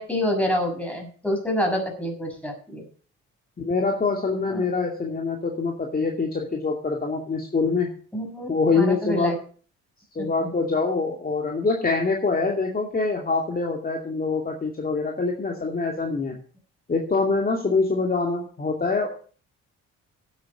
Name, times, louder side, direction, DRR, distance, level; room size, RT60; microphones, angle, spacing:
voice 1, 0.0-2.8 4.5-4.7 8.1-8.5 8.7-9.4 10.2-10.5, equal, 5° left, 2 dB, 6.3 m, -27 dB
voice 2, 3.6-7.9 8.5-9.4 10.1-16.4 16.9-19.1, left 4 dB, 30° left, 1 dB, 2.5 m, -24 dB
10.5 x 8.8 x 6.7 m, 0.42 s
cardioid pair, 90°, 30 cm